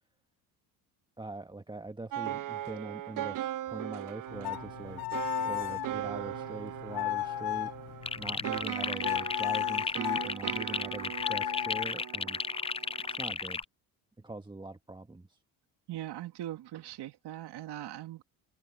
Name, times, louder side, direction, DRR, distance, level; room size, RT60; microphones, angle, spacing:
voice 1, 1.2-3.4 3.7-5.0 5.4-12.4 13.1-13.6 14.2-15.4, right 2 dB, 10° right, 1.5 m, -43 dB
sound 1, 2.1-13.2, right 13 dB, 50° right, 0.7 m, -39 dB
sound 2, 4.3-8.7 9.0-10.3 11.1-11.9, left 17 dB, 55° left, 0.7 m, -35 dB
sound 3, 8.0-13.6, left 5 dB, 15° left, 0.5 m, -34 dB
voice 2, 15.9-18.2, right 13 dB, 65° right, 2.7 m, -40 dB
supercardioid pair, 75°, 43 cm